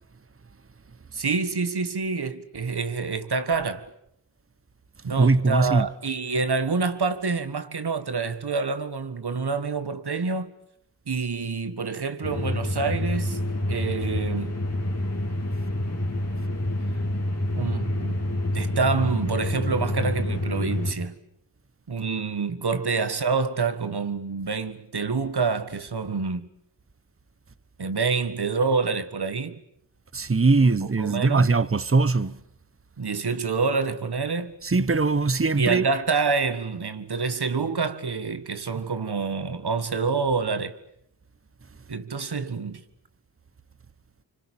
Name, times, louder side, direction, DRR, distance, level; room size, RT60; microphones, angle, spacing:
voice 1, 1.1-3.9 5.0-10.5 11.1-13.4 13.7-14.6 17.5-18.2 18.5-21.2 21.9-26.5 27.8-29.6 30.6-31.5 33.0-34.5 35.6-40.8 41.9-42.8, right 4 dB, 65° right, 1.8 m, -27 dB
voice 2, 5.1-5.9 30.1-32.4 34.6-35.9, right 3 dB, 30° right, 1.1 m, -21 dB
sound 1, 12.2-20.9, left 1 dB, 35° left, 3.6 m, -27 dB
26.0 x 25.0 x 8.8 m
cardioid pair, 40°, 42 cm